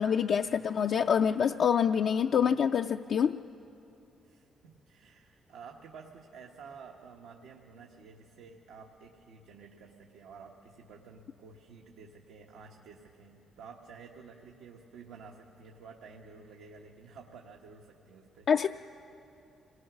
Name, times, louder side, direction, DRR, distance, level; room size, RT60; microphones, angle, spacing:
voice 1, 0.0-3.4 18.5-18.7, left 7 dB, 60° left, 5 dB, 0.4 m, -26 dB
voice 2, 4.2-18.5, right 5 dB, 90° right, 0 dB, 1.2 m, -51 dB
26.0 x 19.0 x 6.1 m, 2.8 s
cardioid pair, 90°, 0 cm